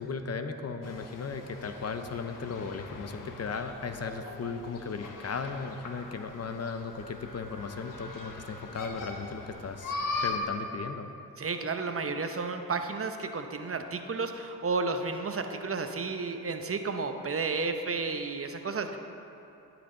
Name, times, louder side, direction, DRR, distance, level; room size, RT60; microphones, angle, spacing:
voice 1, 0.0-9.9 10.2-11.1, left 5 dB, 50° left, 7 dB, 0.8 m, -36 dB
sound 1, 0.8-10.4, left 3 dB, 70° left, 1.1 m, -40 dB
voice 2, 11.4-19.0, right 4 dB, 40° right, 6 dB, 0.8 m, -32 dB
17.0 x 6.1 x 3.8 m, 2.8 s
cardioid pair, 55°, 33 cm